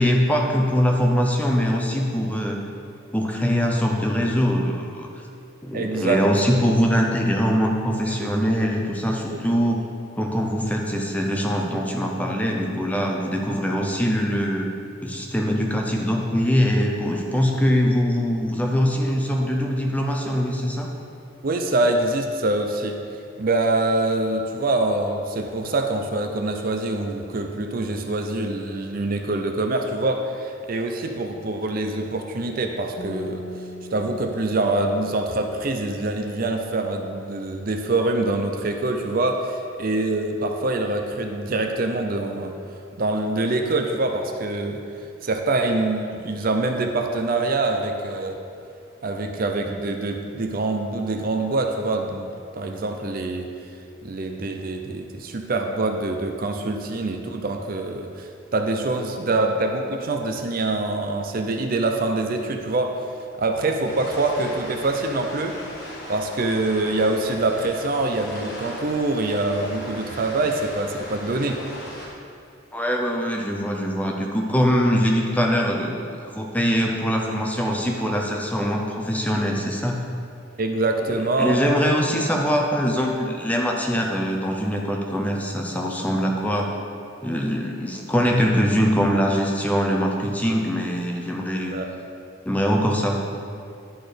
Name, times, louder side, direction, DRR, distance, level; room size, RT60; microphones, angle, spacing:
voice 1, 0.0-2.6 3.1-5.1 5.6-9.8 10.2-14.7 15.0-20.9 72.7-80.0 81.1-86.7 87.2-91.7 92.5-93.2, equal, 5° left, 0 dB, 0.6 m, -22 dB
voice 2, 5.7-6.2 8.1-8.4 9.3-9.4 21.4-23.0 23.4-33.4 33.9-42.5 43.0-44.8 45.2-48.4 49.0-53.5 54.0-63.0 63.4-65.6 66.1-71.6 80.6-81.6 91.7-91.9, right 2 dB, 45° right, 4 dB, 0.5 m, -25 dB
sound 1, 33.0-36.2, equal, 70° left, 1.5 m, -40 dB
sound 2, 63.8-72.1, left 1 dB, 50° left, 1.5 m, -38 dB
11.0 x 4.1 x 5.0 m, 2.4 s
head